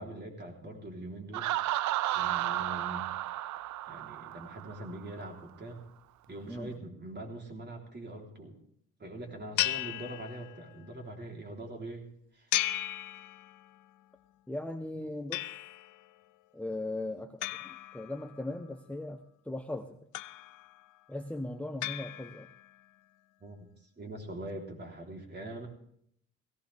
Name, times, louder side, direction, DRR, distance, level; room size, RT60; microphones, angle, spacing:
voice 1, 0.0-1.5 2.1-3.1 3.9-5.9 6.3-8.6 9.0-12.5 14.9-15.1 23.4-23.7 24.0-25.7, right 1 dB, 35° right, 1 dB, 3.6 m, -43 dB
Laughter, 1.3-5.0, right 14 dB, 75° right, 0.5 m, -33 dB
sound 1, 9.6-10.8 12.5-13.8 15.3-16.0 17.4-18.6 20.1-20.8 21.8-22.7, left 15 dB, 85° left, 0.6 m, -36 dB
voice 2, 14.5-15.5 16.5-20.0 21.1-22.5, left 1 dB, 5° left, 8 dB, 0.8 m, -38 dB
17.0 x 15.5 x 3.5 m, 0.68 s
cardioid pair, 90°, 30 cm